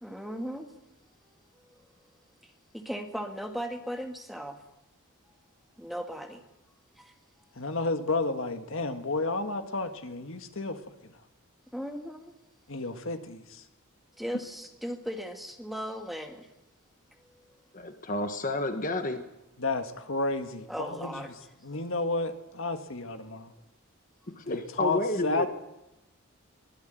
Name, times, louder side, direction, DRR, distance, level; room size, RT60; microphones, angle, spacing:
voice 1, 0.0-0.7 2.4-4.6 5.8-6.4 6.7-6.8 11.7-12.3 14.2-16.5 17.4-17.5 20.7-21.3 21.7-21.8, equal, ahead, 4 dB, 1.8 m, -37 dB
voice 2, 7.6-10.8 12.7-13.4 19.6-21.2 21.6-23.5 24.5-25.5, left 3 dB, 65° left, 7 dB, 1.8 m, -31 dB
voice 3, 17.7-19.2 24.5-25.5, left 2 dB, 35° left, 7 dB, 1.4 m, -30 dB
23.5 x 16.5 x 9.2 m, 0.93 s
head